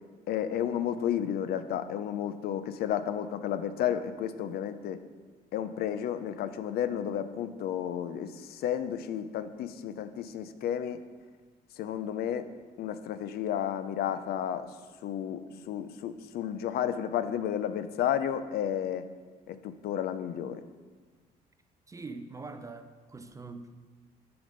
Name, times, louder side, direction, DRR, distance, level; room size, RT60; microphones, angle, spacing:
voice 1, 0.3-5.0 5.5-11.0 11.8-12.4 12.8-14.6 15.0-15.4 15.7-19.0 19.5-20.6, left 9 dB, 65° left, 11 dB, 0.5 m, -32 dB
voice 2, 21.9-23.8, right 3 dB, 20° right, 9 dB, 0.5 m, -43 dB
6.9 x 5.1 x 5.2 m, 1.4 s
cardioid pair, 110°, 17 cm